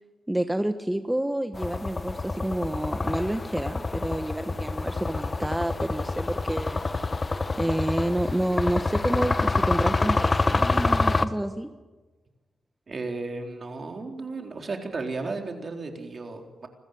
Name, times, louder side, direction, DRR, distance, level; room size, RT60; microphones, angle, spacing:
voice 1, 0.3-6.8 7.6-11.7, right 1 dB, 10° right, 8 dB, 1.3 m, -29 dB
sound 1, 1.5-11.3, left 3 dB, 35° left, 1.2 m, -27 dB
voice 2, 12.9-16.7, right 3 dB, 50° right, 3 dB, 4.1 m, -34 dB
26.0 x 14.5 x 9.5 m, 1.2 s
cardioid pair, 60°, 0 cm